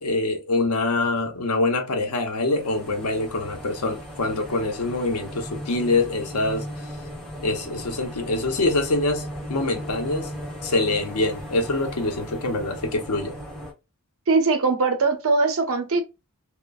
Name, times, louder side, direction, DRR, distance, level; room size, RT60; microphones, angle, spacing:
voice 1, 0.0-6.7 7.4-10.3 10.6-13.4, left 2 dB, 80° left, 0.7 m, -25 dB
sound 1, 2.3-13.7, equal, ahead, 1.3 m, -37 dB
voice 2, 14.3-16.0, right 3 dB, 65° right, 0.7 m, -21 dB
3.0 x 2.2 x 2.3 m
head